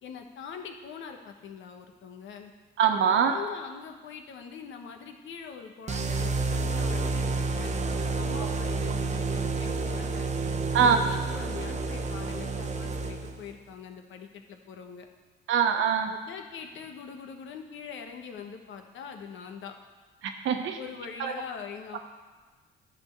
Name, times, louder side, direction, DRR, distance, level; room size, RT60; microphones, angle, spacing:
voice 1, 0.0-2.5 3.1-7.8 8.1-10.3 10.7-15.1 16.1-19.7 20.8-22.0, left 7 dB, 75° left, 4 dB, 1.2 m, -42 dB
voice 2, 2.8-3.3 10.7-11.0 15.5-16.1 20.2-20.8 21.2-21.3, right 7 dB, 80° right, 5 dB, 1.1 m, -23 dB
sound 1, 5.9-13.5, right 3 dB, 35° right, 0.9 m, -30 dB
11.5 x 4.4 x 7.9 m, 1.4 s
cardioid pair, 90°, 20 cm